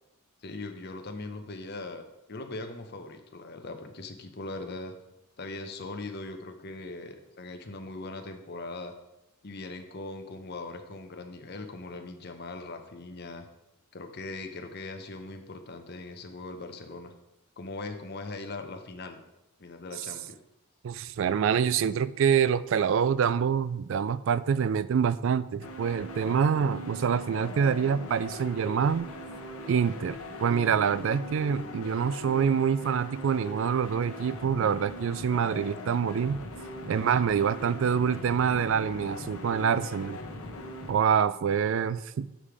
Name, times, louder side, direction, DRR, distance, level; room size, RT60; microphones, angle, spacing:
voice 1, 0.4-5.0 5.4-8.9 9.4-13.4 13.9-17.1 17.6-19.2 19.6-20.4, left 2 dB, 50° left, 6 dB, 0.8 m, -40 dB
voice 2, 20.8-29.1 29.7-36.4 36.9-40.2 40.9-42.3, right 7 dB, 60° right, 16 dB, 0.3 m, -26 dB
sound 1, 25.6-40.9, left 1 dB, 85° left, 1.0 m, -41 dB
7.5 x 5.1 x 4.8 m, 0.92 s
head